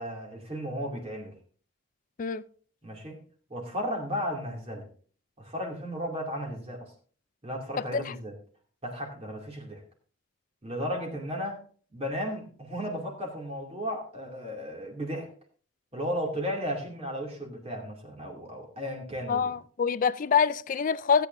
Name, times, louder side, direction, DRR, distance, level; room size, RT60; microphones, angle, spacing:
voice 1, 0.0-1.3 2.8-3.2 3.5-4.9 5.4-6.9 7.4-8.3 8.8-9.8 10.6-11.6 11.9-15.3 15.9-19.5, equal, 30° right, 2.5 m, -34 dB
voice 2, 19.3-21.3, left 6 dB, 40° left, 0.4 m, -25 dB
16.5 x 9.1 x 2.6 m
head